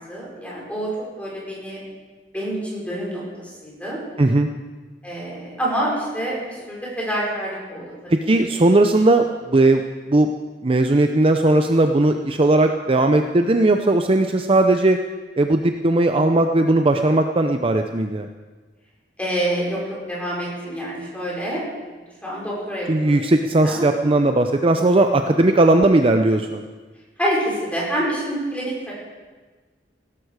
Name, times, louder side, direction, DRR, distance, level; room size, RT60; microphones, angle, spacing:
voice 1, 0.1-0.9 1.2-1.8 2.3-4.0 5.0-6.4 6.7-8.1 8.5-8.6 19.2-19.8 20.1-21.6 22.2-23.3 23.6-23.9 27.2-28.9, right 1 dB, 10° left, -5 dB, 5.5 m, -27 dB
voice 2, 4.2-4.5 8.1-9.8 10.1-10.3 10.6-15.0 15.4-18.3 22.9-26.6, right 2 dB, 30° right, 6 dB, 0.6 m, -17 dB
17.0 x 13.0 x 4.9 m, 1.4 s
head